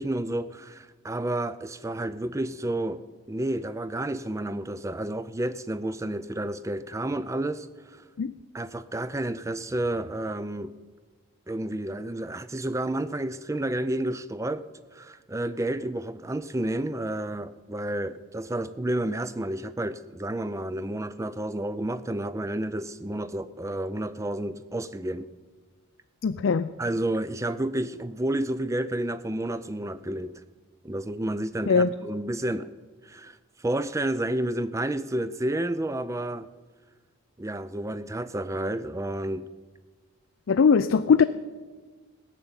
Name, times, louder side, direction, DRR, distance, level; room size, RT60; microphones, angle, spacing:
voice 1, 0.0-3.0 3.3-8.0 8.5-10.7 11.5-25.3 26.8-30.4 30.8-32.7 33.0-36.5 37.4-39.5, right 1 dB, 15° right, 0.4 m, -30 dB
voice 2, 26.2-26.7 31.7-31.9 40.5-41.2, left 5 dB, 60° left, 0.4 m, -20 dB
16.5 x 6.8 x 8.8 m
head